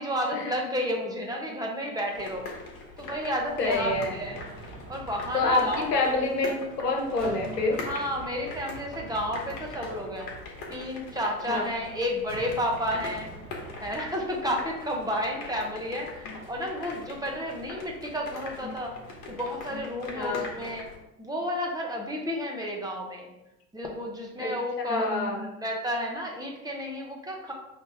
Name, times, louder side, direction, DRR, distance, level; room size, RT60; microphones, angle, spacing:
voice 1, 0.0-2.5 3.0-4.4 4.9-6.1 7.9-10.3 10.7-13.3 13.8-18.9 19.3-20.9 21.2-23.3 23.7-25.1 25.6-27.5, equal, 10° right, 0 dB, 0.9 m, -31 dB
sound 1, 2.1-21.0, left 3 dB, 45° left, 1.3 m, -42 dB
voice 2, 3.6-4.2 5.3-7.8 11.5-11.7 16.2-16.4 18.6-18.7 19.7-19.8 20.1-20.5 24.4-25.5, left 2 dB, 90° left, 2 dB, 0.9 m, -27 dB
sound 2, 3.7-6.7 7.2-11.4 12.3-14.4, right 2 dB, 25° right, 1.7 m, -46 dB
5.4 x 2.9 x 3.4 m, 0.92 s
hypercardioid pair, 80°, 47 cm